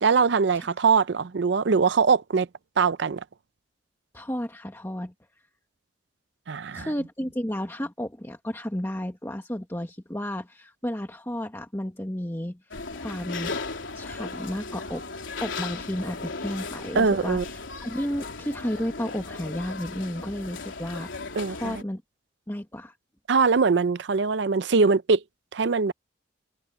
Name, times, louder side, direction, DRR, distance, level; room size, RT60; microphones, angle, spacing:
voice 1, 0.0-2.5 2.8-3.2 6.5-6.9 16.9-17.4 21.4-21.8 23.3-25.2 25.5-25.9, right 5 dB, 65° right, 0.5 m, -22 dB
voice 2, 4.1-5.1 6.7-13.6 13.9-22.0 22.5-22.9, equal, 15° left, 1.6 m, -33 dB
sound 1, 12.7-21.8, left 3 dB, 85° left, 3.4 m, -36 dB
head